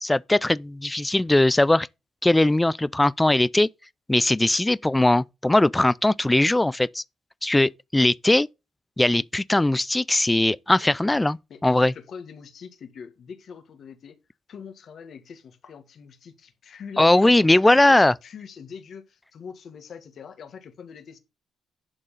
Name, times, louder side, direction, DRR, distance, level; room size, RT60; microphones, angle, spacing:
voice 1, 0.0-1.9 2.2-3.7 4.1-7.0 7.4-8.5 9.0-11.4 11.6-11.9 17.0-18.1, left 1 dB, 10° left, 0.4 m, -20 dB
voice 2, 11.5-14.2 14.5-21.2, left 6 dB, 60° left, 1.8 m, -42 dB
11.0 x 3.7 x 6.5 m
cardioid pair, 90°, 0 cm